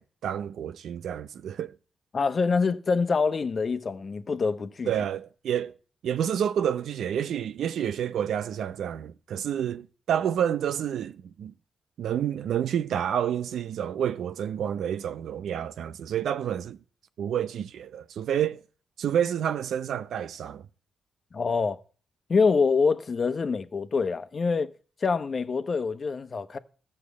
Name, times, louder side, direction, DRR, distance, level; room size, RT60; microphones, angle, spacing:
voice 1, 0.0-1.8 4.9-5.8 6.0-11.5 12.0-16.8 17.2-18.6 19.0-20.6, right 9 dB, 80° right, 0.6 m, -29 dB
voice 2, 2.1-4.9 21.3-21.8 22.3-24.7 25.0-26.6, left 4 dB, 45° left, 1.0 m, -25 dB
13.5 x 6.8 x 8.3 m
cardioid pair, 95°, 0 cm